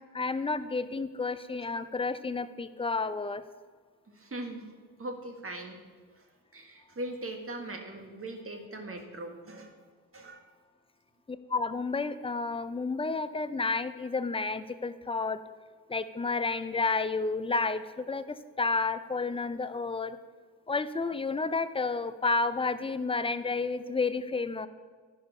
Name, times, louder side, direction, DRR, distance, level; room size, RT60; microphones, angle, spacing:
voice 1, 0.1-3.4 11.3-15.4 15.9-20.2 20.7-24.7, left 3 dB, 15° left, 12 dB, 0.6 m, -31 dB
voice 2, 4.1-4.7 5.0-5.8 6.1-9.8 10.1-10.4, right 1 dB, 35° right, 3 dB, 1.8 m, -40 dB
12.0 x 5.3 x 5.3 m, 1.5 s
supercardioid pair, 55°, 37 cm